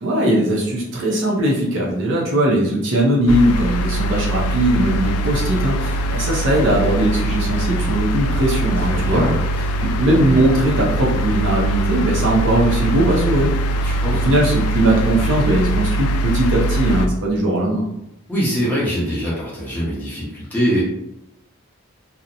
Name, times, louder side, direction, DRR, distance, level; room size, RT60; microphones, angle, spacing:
voice 1, 0.0-9.2 10.0-13.5 13.8-17.8, right 1 dB, 55° right, -3 dB, 0.5 m, -19 dB
sound 1, 3.3-17.1, right 1 dB, 90° left, 0.3 m, -22 dB
voice 2, 8.8-9.3 13.8-14.3 18.3-20.8, equal, 10° left, -8 dB, 0.8 m, -23 dB
2.7 x 2.0 x 2.5 m, 0.82 s
head